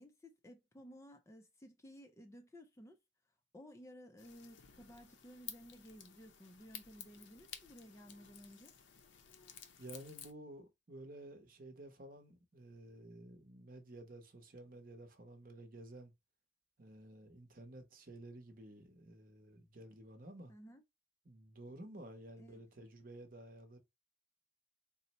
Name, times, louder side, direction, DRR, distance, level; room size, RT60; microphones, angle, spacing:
voice 1, 0.0-3.0 3.5-8.7 20.5-20.8 22.4-22.6, equal, 15° left, 0.4 m, -56 dB
sound 1, 4.2-10.3, left 9 dB, 70° left, 0.6 m, -54 dB
voice 2, 9.8-16.1 16.8-20.5 21.2-23.8, right 1 dB, 45° right, 0.8 m, -53 dB
4.0 x 2.0 x 4.1 m
head